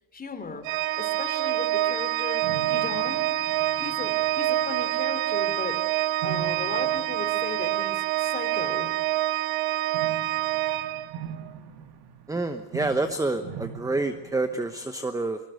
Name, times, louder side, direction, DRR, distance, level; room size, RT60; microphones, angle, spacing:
voice 1, 0.1-0.7 1.0-3.2 3.7-5.8 6.2-8.9, left 4 dB, 20° left, 7 dB, 3.6 m, -36 dB
Organ, 0.6-11.5, right 14 dB, 85° right, 1.2 m, -26 dB
sound 1, 1.6-1.7 2.4-5.2 6.2-8.3 9.9-14.9, right 8 dB, 50° right, 2.3 m, -41 dB
voice 2, 12.3-15.4, right 2 dB, 5° right, 9 dB, 1.0 m, -28 dB
23.0 x 22.5 x 7.9 m, 0.86 s
cardioid pair, 135°, 49 cm